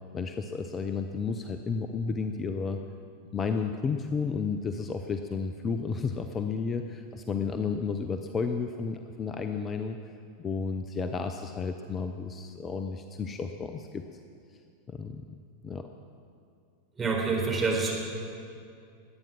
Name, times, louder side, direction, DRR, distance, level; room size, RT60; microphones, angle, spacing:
voice 1, 0.1-2.8 3.3-10.0 10.4-14.0 14.9-15.2 15.6-15.9, left 5 dB, 25° left, 7 dB, 0.7 m, -32 dB
voice 2, 17.0-18.0, right 4 dB, 20° right, -1 dB, 4.1 m, -27 dB
21.5 x 9.2 x 6.0 m, 2.4 s
figure-of-eight pair, 90°, 0 cm